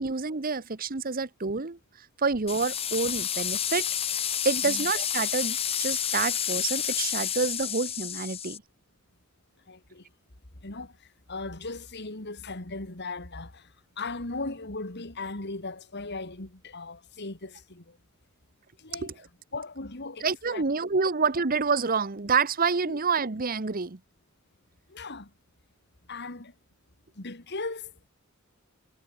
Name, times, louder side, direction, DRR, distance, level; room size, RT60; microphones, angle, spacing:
voice 1, 0.0-3.9 4.4-8.6 19.0-19.1 20.2-24.0, right 4 dB, 45° right, 1.1 m, -28 dB
sound 1, 2.5-8.6, left 9 dB, 30° left, 0.7 m, -30 dB
voice 2, 9.7-10.1 10.6-18.0 18.8-19.1 19.5-20.6 22.9-23.0 24.9-25.3 26.1-26.5 27.1-28.1, left 3 dB, 55° left, 2.8 m, -38 dB
head